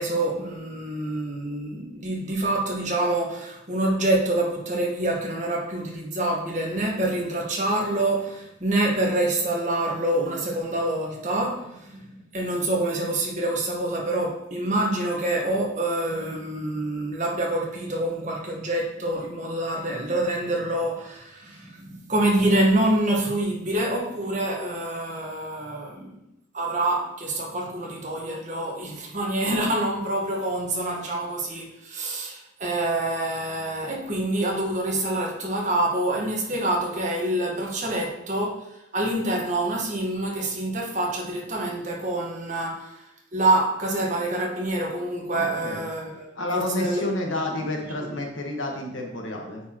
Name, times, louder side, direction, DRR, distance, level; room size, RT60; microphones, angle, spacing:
voice 1, 0.0-26.1 26.5-38.6 38.9-42.9 43.3-47.1 48.0-48.1, right 1 dB, 40° right, -1 dB, 1.3 m, -26 dB
voice 2, 45.3-45.8 46.3-49.6, left 2 dB, 80° left, 1 dB, 1.3 m, -30 dB
9.2 x 4.5 x 3.0 m, 0.84 s
head